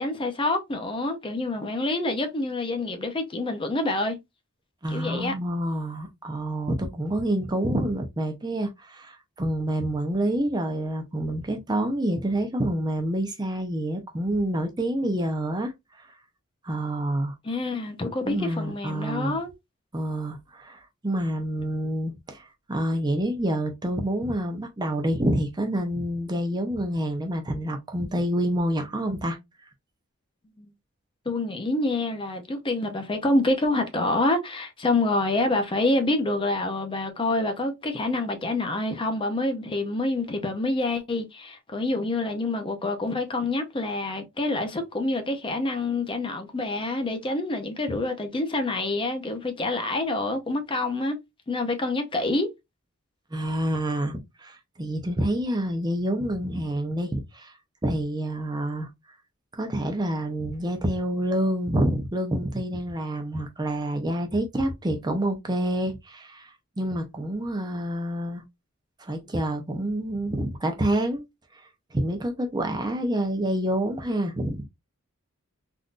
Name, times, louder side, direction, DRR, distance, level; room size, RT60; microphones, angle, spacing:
voice 1, 0.0-4.2 4.9-5.3 17.4-19.5 30.6-30.7 31.3-51.2 51.5-52.5, left 2 dB, 25° left, 0.5 m, -27 dB
voice 2, 4.8-15.7 16.6-17.3 18.2-19.4 19.9-29.4 53.3-57.5 57.8-58.9 59.6-68.4 69.0-71.2 71.9-74.6, right 1 dB, 20° right, 0.6 m, -27 dB
3.6 x 2.6 x 2.4 m
head